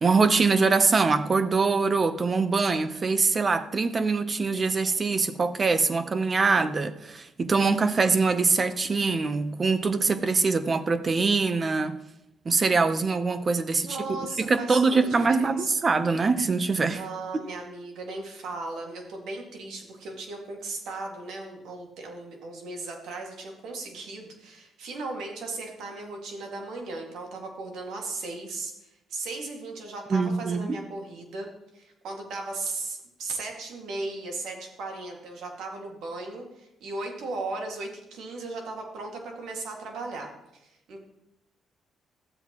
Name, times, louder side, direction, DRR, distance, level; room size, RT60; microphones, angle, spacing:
voice 1, 0.0-12.0 12.4-17.0 30.1-30.8, right 4 dB, 35° right, 12 dB, 0.7 m, -23 dB
voice 2, 13.8-15.7 16.9-31.5 31.7-41.0, right 3 dB, 80° right, 2 dB, 1.9 m, -37 dB
13.0 x 7.9 x 3.0 m, 0.91 s
cardioid pair, 90°, 0 cm